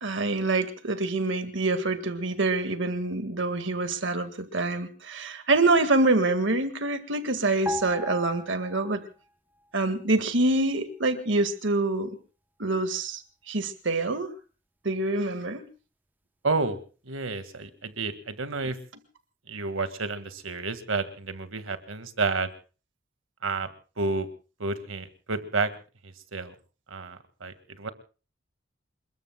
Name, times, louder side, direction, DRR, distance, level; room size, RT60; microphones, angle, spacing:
voice 1, 0.0-9.0 9.7-12.2 12.6-13.2 13.5-14.3 14.8-15.6, right 2 dB, 70° right, 1.9 m, -26 dB
sound 1, 7.7-9.3 9.6-9.8, equal, 10° right, 0.8 m, -36 dB
voice 2, 16.4-16.8 17.1-18.8 19.5-22.5 23.4-23.7 24.0-24.3 24.6-25.7 26.0-26.5 26.9-27.9, right 3 dB, 90° right, 1.9 m, -30 dB
28.5 x 21.5 x 2.3 m
head